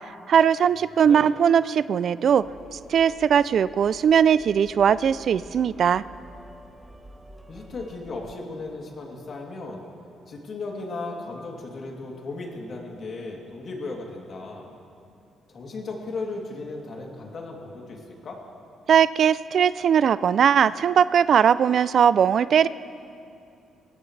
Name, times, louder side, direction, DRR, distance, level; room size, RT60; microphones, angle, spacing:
voice 1, 0.3-2.4 2.7-6.0 18.9-22.7, right 8 dB, 60° right, 17 dB, 0.3 m, -19 dB
sound 1, 2.4-8.4, right 1 dB, 15° right, 1.2 m, -48 dB
voice 2, 7.5-9.8 10.3-14.7 15.5-18.4, left 3 dB, 55° left, -1 dB, 3.0 m, -36 dB
22.0 x 17.5 x 3.3 m, 2.6 s
cardioid pair, 90°, 0 cm